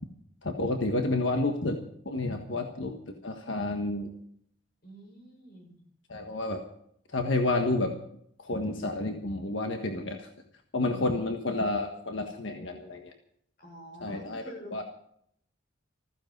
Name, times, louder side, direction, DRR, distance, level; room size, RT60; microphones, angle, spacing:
voice 1, 0.4-1.8 2.0-2.9 3.2-4.1 6.1-6.6 7.1-7.9 8.4-10.3 10.7-13.1 14.0-14.4 14.7-14.8, left 2 dB, 90° left, 4 dB, 1.5 m, -30 dB
voice 2, 4.8-5.8 10.9-11.1 13.6-14.7, equal, 55° left, 2 dB, 6.0 m, -47 dB
15.0 x 15.0 x 5.4 m, 0.68 s
head